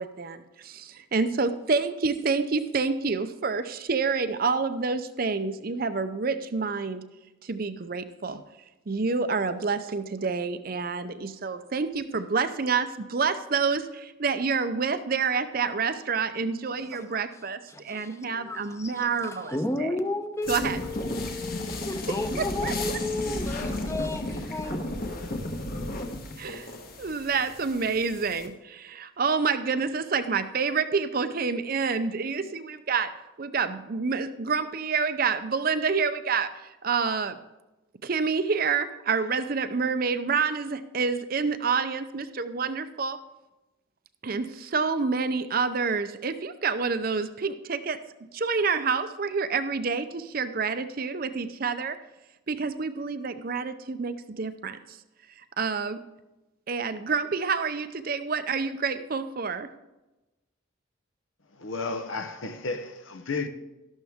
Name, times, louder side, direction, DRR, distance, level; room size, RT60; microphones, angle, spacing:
voice 1, 0.0-7.0 7.4-8.4 8.9-19.9 20.5-20.8 22.4-22.7 26.4-26.7 27.0-33.1 33.4-36.5 36.8-37.4 38.0-43.2 44.2-48.0 48.3-52.0 52.5-55.0 55.6-56.0 56.7-59.7, right 5 dB, 45° right, 0.6 m, -28 dB
voice 2, 17.7-24.8, left 2 dB, 15° left, 0.7 m, -33 dB
sound 1, 20.4-28.5, left 1 dB, 45° left, 1.3 m, -34 dB
voice 3, 61.5-63.5, left 3 dB, 80° left, 0.9 m, -33 dB
12.5 x 11.5 x 3.6 m
head